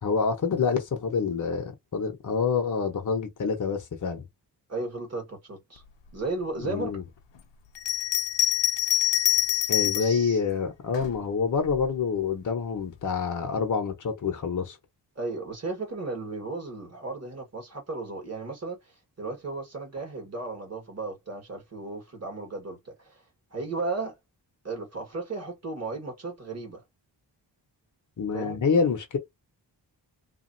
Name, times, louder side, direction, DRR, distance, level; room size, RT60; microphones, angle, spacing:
voice 1, 0.0-4.2 6.6-7.0 9.7-14.8 28.2-29.2, left 5 dB, 45° left, 0.9 m, -27 dB
voice 2, 4.7-5.8 6.1-7.0 9.9-10.4 15.1-23.2 23.5-24.1 24.6-26.8 28.3-28.6, right 3 dB, 35° right, 1.7 m, -35 dB
Bell, 7.8-10.2 10.9-11.9, left 12 dB, 80° left, 0.6 m, -25 dB
2.9 x 2.5 x 2.6 m
wide cardioid pair, 125°, 43 cm